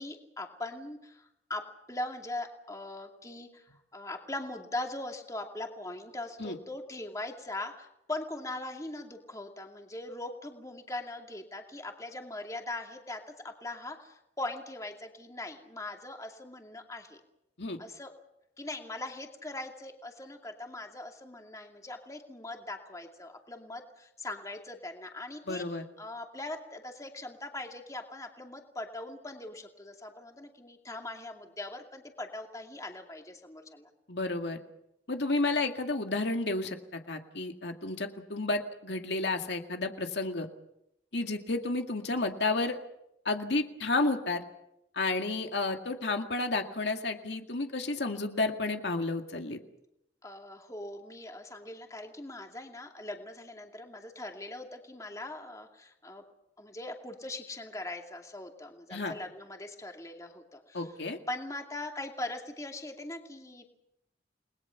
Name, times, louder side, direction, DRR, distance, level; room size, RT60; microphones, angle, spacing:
voice 1, 0.0-17.2 17.8-18.1 18.6-33.9 50.2-56.2 56.6-60.9 61.3-63.7, left 2 dB, 20° left, 3 dB, 2.5 m, -41 dB
voice 2, 25.5-25.8 34.1-34.6 35.1-40.5 41.1-42.8 43.3-44.4 44.9-49.6 58.9-59.1 60.7-61.2, left 2 dB, 75° left, 4 dB, 2.1 m, -31 dB
30.0 x 21.0 x 5.9 m, 0.81 s
head